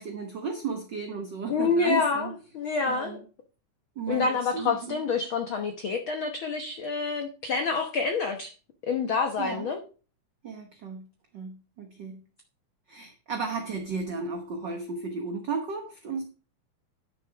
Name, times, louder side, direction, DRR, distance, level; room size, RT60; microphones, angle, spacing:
voice 1, 0.0-2.3 2.9-3.2 3.9-5.0 9.4-9.7 10.4-11.1 11.3-12.2 12.9-16.2, right 5 dB, 60° right, 5 dB, 1.2 m, -34 dB
voice 2, 1.5-3.2 4.1-8.5 8.8-9.8, left 4 dB, 60° left, 5 dB, 1.4 m, -27 dB
11.0 x 6.8 x 4.7 m, 0.36 s
omnidirectional pair, 3.5 m